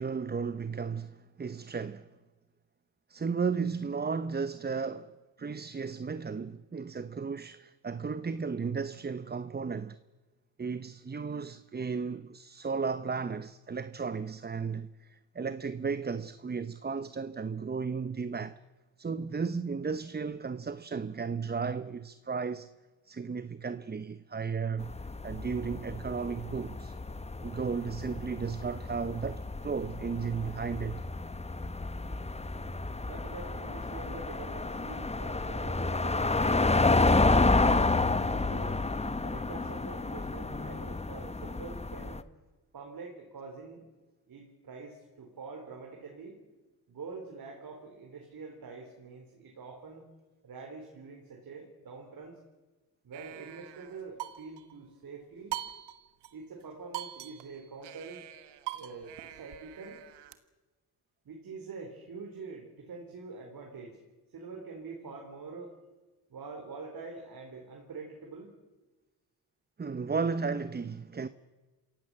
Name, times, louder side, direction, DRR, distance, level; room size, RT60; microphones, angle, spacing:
voice 1, 0.0-2.1 3.1-5.1 5.4-10.0 10.6-18.6 19.0-22.7 23.1-24.9 25.2-26.9 27.4-31.0 69.8-71.3, right 5 dB, 25° right, 0.9 m, -34 dB
sound 1, 24.8-42.2, left 3 dB, 15° left, 1.2 m, -30 dB
voice 2, 33.0-36.7 37.2-38.8 39.2-42.2 42.7-43.8 44.3-46.4 46.9-50.0 50.4-52.4 53.0-55.6 56.3-58.2 58.7-60.0 61.2-64.0 64.3-65.7 66.3-68.6, right 4 dB, 60° right, 4.2 m, -45 dB
sound 2, 53.1-54.8 55.5-56.3 56.6-56.7 56.9-60.4, right 13 dB, 90° right, 1.5 m, -42 dB
27.5 x 16.5 x 7.7 m
cardioid pair, 70°, 40 cm